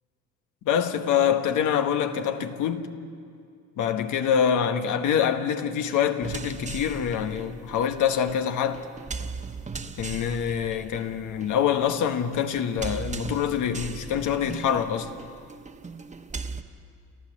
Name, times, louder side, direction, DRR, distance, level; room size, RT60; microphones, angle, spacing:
voice 1, 0.6-3.0 3.8-8.9 10.0-15.1, left 8 dB, 85° left, 1.3 m, -25 dB
sound 1, 6.2-16.6, right 4 dB, 25° right, 1.0 m, -38 dB
29.0 x 13.5 x 7.4 m
cardioid pair, 90°, 30 cm